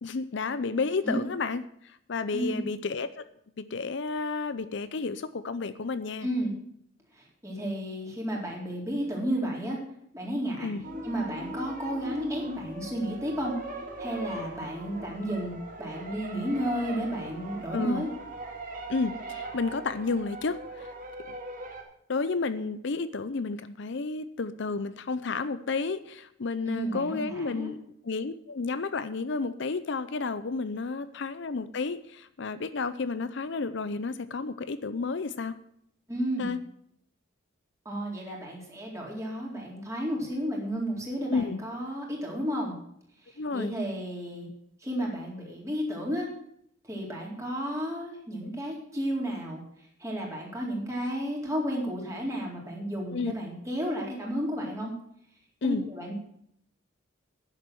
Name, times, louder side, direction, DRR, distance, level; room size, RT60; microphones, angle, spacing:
voice 1, 0.0-1.6 2.1-3.2 3.6-6.3 10.6-10.9 17.7-18.1 18.9-20.9 21.3-21.4 22.1-27.8 28.0-35.6 36.4-36.6 41.3-41.6 43.4-43.7 53.1-53.3 55.6-55.9, left 4 dB, 65° left, 13 dB, 0.6 m, -31 dB
voice 2, 2.3-2.6 6.2-6.5 7.2-9.8 10.1-10.7 11.0-13.5 14.0-18.1 26.7-27.7 36.1-36.5 37.9-42.7 43.5-44.5 44.8-46.3 46.9-49.6 50.0-54.9 55.6-56.1, equal, 15° right, -2 dB, 3.9 m, -32 dB
sound 1, 10.8-21.8, right 1 dB, 40° right, 2.7 m, -40 dB
10.5 x 7.9 x 7.7 m, 0.70 s
head